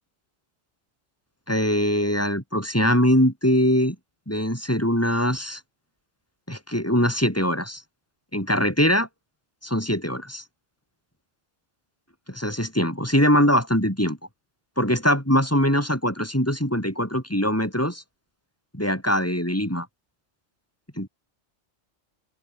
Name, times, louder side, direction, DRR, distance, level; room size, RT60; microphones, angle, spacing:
voice 1, 1.5-4.0 4.3-5.6 6.5-7.8 8.3-9.1 9.6-10.4 12.3-14.2 14.8-18.0 18.7-19.9 21.0-21.1, equal, 10° left, 7.4 m, -22 dB
omnidirectional pair, 1.2 m